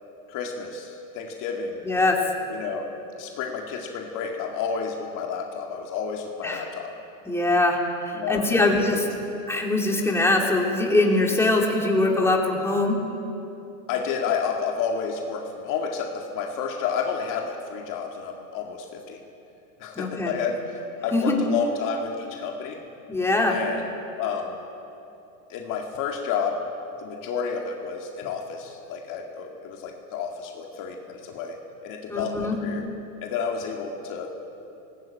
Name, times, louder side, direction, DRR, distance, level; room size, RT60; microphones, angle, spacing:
voice 1, 0.3-1.8 2.5-2.9 3.2-6.9 8.1-9.0 13.9-19.2 19.8-22.8 23.5-23.9 24.2-24.6 25.5-26.6 27.0-32.8 33.2-34.3, left 6 dB, 45° left, 2 dB, 2.2 m, -30 dB
voice 2, 1.8-2.2 6.4-6.7 7.3-7.8 8.1-9.0 9.5-13.0 20.0-20.3 21.1-21.3 23.1-23.6 32.1-32.6, left 2 dB, 5° left, -1 dB, 3.3 m, -22 dB
19.0 x 18.5 x 8.8 m, 2.9 s
supercardioid pair, 115°, 42 cm